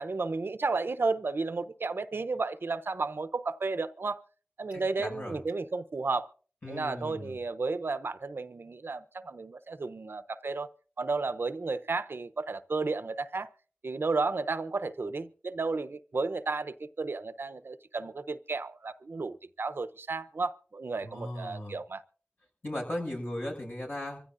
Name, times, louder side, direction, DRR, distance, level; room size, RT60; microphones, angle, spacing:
voice 1, 0.0-4.2 4.6-6.3 6.7-10.7 11.0-13.5 13.8-22.0, right 3 dB, 85° right, 0.8 m, -33 dB
voice 2, 4.7-5.4 6.6-7.4 21.0-21.8 22.6-24.2, left 1 dB, 70° left, 7.1 m, -37 dB
25.0 x 15.5 x 2.6 m
wide cardioid pair, 40°, 4 cm